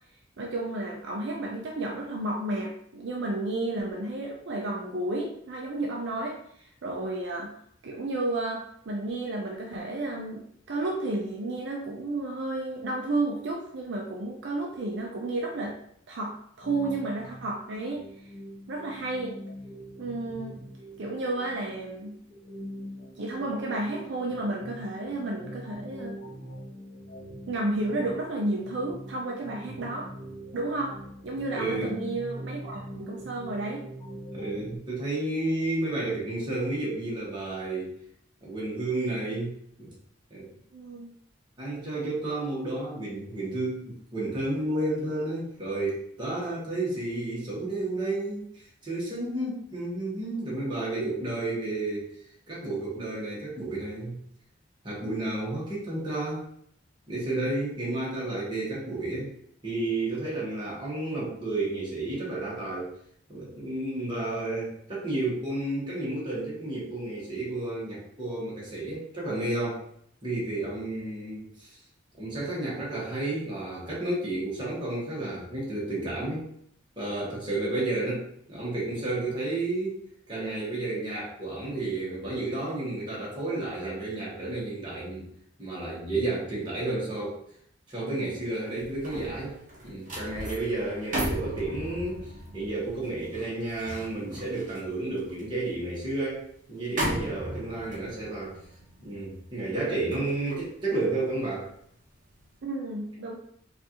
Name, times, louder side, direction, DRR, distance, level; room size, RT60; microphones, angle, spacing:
voice 1, 0.4-7.5 7.8-15.8 16.1-18.0 18.7-19.4 20.0-20.6 21.0-22.2 23.2-26.2 27.5-30.1 30.5-30.9 31.2-33.8 40.7-41.1 50.7-51.1 102.6-103.4, right 2 dB, 60° right, -1 dB, 0.5 m, -32 dB
sound 1, 16.6-34.8, equal, 40° left, 1.2 m, -43 dB
voice 2, 31.5-31.9 34.3-37.9 38.4-39.5 39.8-39.9 40.3-40.5 41.6-52.1 52.5-54.2 54.8-56.4 57.1-59.3 59.6-62.9 63.3-69.8 70.2-71.8 72.2-76.4 77.0-80.0 80.3-85.3 85.6-87.4 87.9-89.6 89.8-92.2 92.5-98.6 99.0-101.7, right 2 dB, 25° right, -6 dB, 1.4 m, -31 dB
sound 2, 88.6-101.9 102.3-102.5, right 1 dB, 40° right, 1.0 m, -37 dB
4.5 x 2.5 x 2.9 m, 0.68 s
head